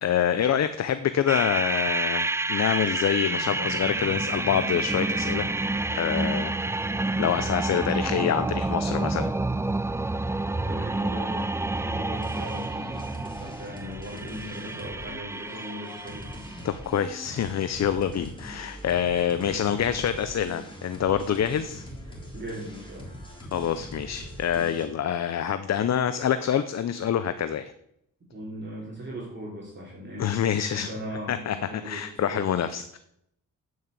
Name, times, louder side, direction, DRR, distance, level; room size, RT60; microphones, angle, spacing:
voice 1, 0.0-5.5 5.9-6.5 7.2-9.3 16.6-21.8 23.5-27.7 30.2-30.9 31.3-31.6 31.8-33.0, left 9 dB, 55° left, 11 dB, 0.7 m, -26 dB
sound 1, 1.3-16.6, right 2 dB, 10° right, 0.4 m, -29 dB
voice 2, 10.6-16.3 18.1-18.3 19.5-20.0 22.3-23.3 28.3-32.5, equal, 35° right, -4 dB, 3.2 m, -39 dB
sound 2, 12.1-24.8, equal, 15° left, 3.7 m, -42 dB
8.9 x 6.3 x 8.1 m, 0.75 s
cardioid pair, 90°, 32 cm